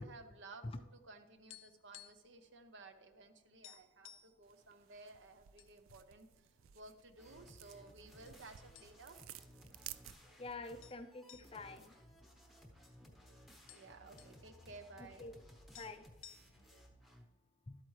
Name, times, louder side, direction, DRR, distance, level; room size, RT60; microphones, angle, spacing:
voice 1, 0.0-6.5 6.7-9.2 13.7-15.3, right 3 dB, 65° right, 8 dB, 0.8 m, -56 dB
sound 1, 1.4-2.4 2.6-2.8 3.2-3.3 3.6-4.4 5.1-5.7 6.1-6.2 6.9-7.6 8.3-8.4 8.8-9.3 9.6-9.7 10.8-12.9 13.2-13.3 13.5-14.4 15.4-15.5 15.7-16.8, left 11 dB, 80° left, 0.5 m, -58 dB
sound 2, 4.4-10.6, right 12 dB, 80° right, 0.4 m, -56 dB
sound 3, 7.2-17.2, equal, ahead, 0.8 m, -60 dB
voice 2, 10.4-11.9 15.2-15.3 15.8-16.0 17.7-17.8, left 3 dB, 25° left, 9 dB, 0.4 m, -47 dB
12.0 x 8.4 x 3.2 m, 1.2 s
head